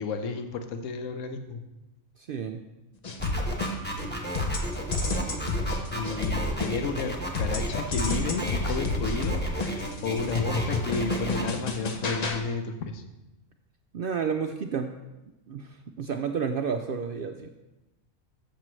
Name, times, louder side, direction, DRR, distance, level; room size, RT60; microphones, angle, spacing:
voice 1, 0.0-1.6 5.9-13.0, left 4 dB, 70° left, 8 dB, 1.1 m, -32 dB
voice 2, 2.2-2.6 13.9-15.0 15.5-17.5, right 6 dB, 65° right, 5 dB, 0.5 m, -31 dB
sound 1, 3.0-4.0 4.3-7.0 7.3-12.4, left 2 dB, 40° left, 0.7 m, -30 dB
sound 2, 3.2-11.4, equal, 10° left, 1.1 m, -33 dB
13.5 x 6.7 x 3.2 m, 1.0 s
omnidirectional pair, 1.4 m